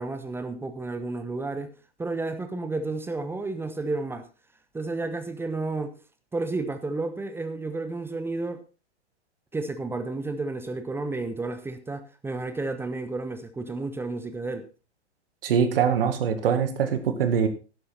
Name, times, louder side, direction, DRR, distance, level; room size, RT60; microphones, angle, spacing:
voice 1, 0.0-1.7 2.0-4.3 4.7-5.9 6.3-8.6 9.5-14.7, right 3 dB, 5° right, 0.9 m, -31 dB
voice 2, 15.4-17.5, right 7 dB, 55° right, 2.1 m, -23 dB
12.0 x 10.5 x 4.1 m
figure-of-eight pair, 105°, 34 cm